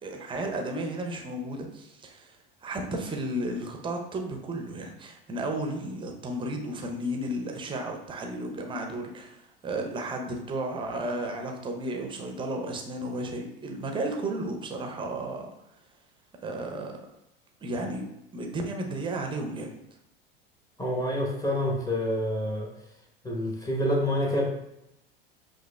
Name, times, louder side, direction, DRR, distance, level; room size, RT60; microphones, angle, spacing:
voice 1, 0.0-2.4 2.6-15.5 16.4-17.0 17.6-19.8, right 1 dB, 15° right, 2 dB, 0.7 m, -33 dB
voice 2, 20.8-22.7 23.2-24.4, equal, 10° left, -1 dB, 1.1 m, -27 dB
7.8 x 2.6 x 2.3 m, 0.86 s
figure-of-eight pair, 75°, 29 cm